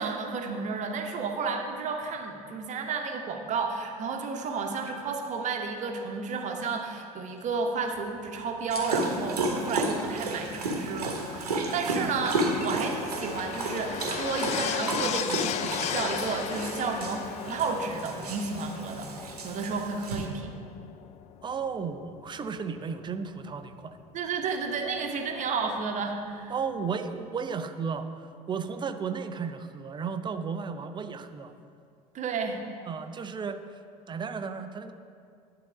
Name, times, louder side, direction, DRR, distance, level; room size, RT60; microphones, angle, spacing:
voice 1, 0.0-20.6 24.1-26.5 32.1-32.6, right 4 dB, 40° right, 3 dB, 1.1 m, -32 dB
sound 1, 7.3-14.9, left 2 dB, 80° left, 1.5 m, -54 dB
sound 2, 8.0-24.4 25.4-25.5, left 10 dB, 35° left, 0.4 m, -38 dB
Dog, 8.7-20.3, right 2 dB, 80° right, 1.1 m, -32 dB
voice 2, 21.4-24.0 26.5-31.5 32.9-33.6 34.1-34.9, right 6 dB, 25° right, 9 dB, 0.6 m, -34 dB
11.5 x 3.9 x 7.0 m, 2.3 s
figure-of-eight pair, 70°, 20 cm